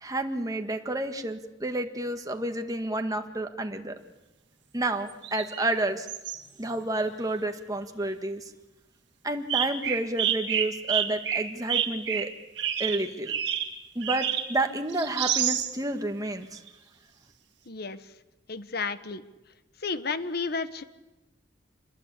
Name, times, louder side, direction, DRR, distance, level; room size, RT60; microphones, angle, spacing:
voice 1, 0.0-4.0 4.7-6.1 6.6-8.5 9.2-12.3 12.8-13.3 14.0-16.6, right 2 dB, 20° right, 5 dB, 1.8 m, -30 dB
sound 1, 5.1-5.8 6.1-6.4 9.5-14.6 14.9-15.7 16.6-16.7, right 9 dB, 65° right, 2.2 m, -29 dB
voice 2, 17.7-18.1 18.5-19.2 19.8-20.8, left 4 dB, 60° left, 12 dB, 1.3 m, -32 dB
27.0 x 21.0 x 8.4 m, 1.0 s
head